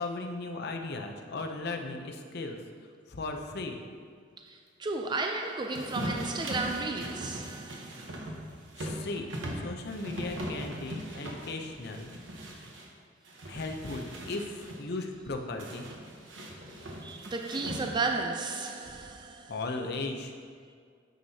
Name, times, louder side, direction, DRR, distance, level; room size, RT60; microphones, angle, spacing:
voice 1, 0.0-2.6 3.1-3.8 8.8-12.1 12.5-12.6 13.5-15.8 19.5-20.3, left 3 dB, 60° left, 0.7 m, -37 dB
voice 2, 4.4-8.3 17.0-19.5, right 3 dB, 25° right, 0.4 m, -34 dB
sound 1, 5.7-12.9 13.2-14.8 15.6-18.2, right 1 dB, 80° right, 1.1 m, -40 dB
9.2 x 6.4 x 2.8 m
head